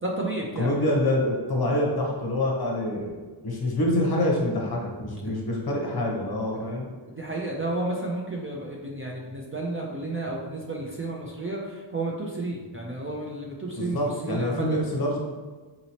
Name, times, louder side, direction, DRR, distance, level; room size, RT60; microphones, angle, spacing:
voice 1, 0.0-0.7 6.5-6.7 7.2-14.8, right 2 dB, 30° right, -2 dB, 0.4 m, -32 dB
voice 2, 0.6-3.1 3.4-6.9 13.8-15.2, left 1 dB, 50° left, -1 dB, 0.9 m, -26 dB
4.1 x 2.9 x 2.8 m, 1.3 s
wide cardioid pair, 150°, 47 cm